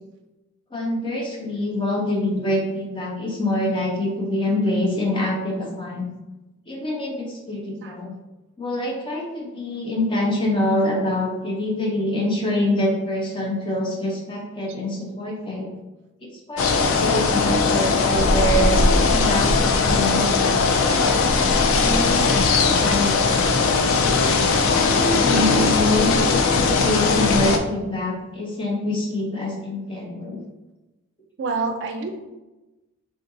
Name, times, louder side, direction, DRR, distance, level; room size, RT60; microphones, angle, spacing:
voice 1, 0.7-6.1 6.7-8.1 8.6-15.7 16.5-21.0 21.8-22.4 22.8-23.4 24.7-26.1 26.5-30.4, left 1 dB, 25° left, -2 dB, 0.6 m, -25 dB
sound 1, 16.6-27.6, left 4 dB, 65° left, 0.3 m, -19 dB
voice 2, 31.4-32.3, right 4 dB, 55° right, 5 dB, 0.3 m, -27 dB
3.6 x 2.5 x 2.6 m, 1.1 s
head